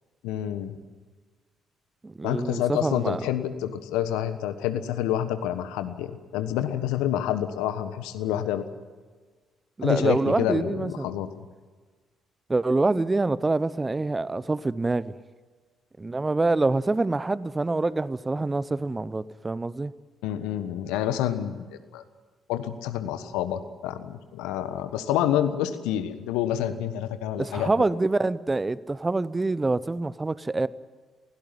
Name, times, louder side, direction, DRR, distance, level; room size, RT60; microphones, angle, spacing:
voice 1, 0.2-0.8 2.2-8.7 9.8-11.5 20.2-21.7 21.9-22.0 22.5-27.7, left 11 dB, 70° left, 11 dB, 1.3 m, -28 dB
voice 2, 2.0-3.2 9.8-11.1 12.5-15.1 16.0-19.9 27.4-30.7, right 2 dB, 20° right, 18 dB, 0.8 m, -26 dB
21.5 x 17.0 x 9.2 m, 1.4 s
figure-of-eight pair, 45°, 0 cm